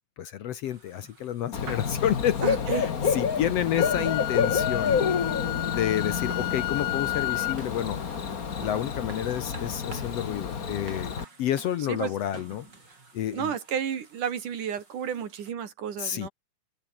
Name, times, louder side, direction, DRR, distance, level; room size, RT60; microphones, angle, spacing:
voice 1, 0.2-2.4 2.7-5.0 5.6-8.0 8.6-11.1 11.4-12.7 13.1-13.5 16.0-16.3, left 10 dB, 65° left, 1.8 m, -30 dB
sound 1, 0.6-15.5, right 4 dB, 35° right, 4.5 m, -50 dB
Bird / Cricket, 1.5-11.2, left 6 dB, 40° left, 1.4 m, -29 dB
voice 2, 2.4-2.9 4.0-4.1 11.9-12.1 13.3-16.3, right 8 dB, 75° right, 4.0 m, -32 dB
Wind instrument woodwind instrument, 3.8-7.6, left 18 dB, 80° left, 1.6 m, -32 dB
omnidirectional pair, 3.6 m